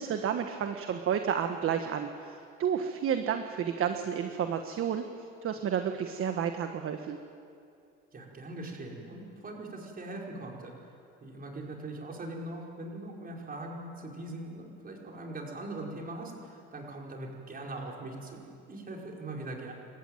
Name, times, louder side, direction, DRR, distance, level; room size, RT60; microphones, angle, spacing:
voice 1, 0.0-7.2, right 8 dB, 45° right, 6 dB, 1.4 m, -31 dB
voice 2, 8.1-10.7 11.2-19.7, right 2 dB, 30° right, -1 dB, 5.2 m, -41 dB
28.0 x 14.5 x 9.3 m, 2.5 s
cardioid pair, 115°, 31 cm